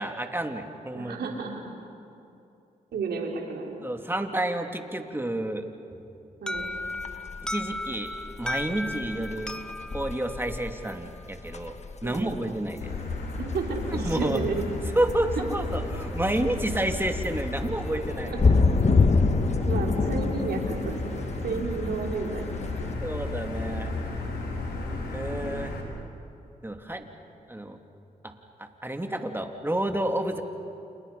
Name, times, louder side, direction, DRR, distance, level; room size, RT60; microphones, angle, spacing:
voice 1, 0.0-1.2 3.8-5.6 7.4-8.1 8.4-9.5 9.9-11.7 12.0-12.9 13.9-14.4 14.9-18.3 23.0-23.9 25.1-25.7 26.6-27.1 27.5-27.8 28.2-28.3 28.6-30.4, right 1 dB, 15° right, 4 dB, 3.1 m, -30 dB
voice 2, 0.9-1.7 2.9-3.8 6.4-6.6 12.0-12.4 13.4-14.7 15.4-15.5 18.3-18.4 19.6-22.6, right 5 dB, 80° right, 1 dB, 4.1 m, -32 dB
sound 1, 6.5-22.9, left 4 dB, 45° left, 1.6 m, -28 dB
Alarm, 6.5-11.3, left 1 dB, 5° left, 0.9 m, -36 dB
Motor vehicle (road), 12.8-25.8, left 3 dB, 85° left, 3.9 m, -34 dB
29.5 x 28.5 x 5.7 m, 2.7 s
supercardioid pair, 45°, 16 cm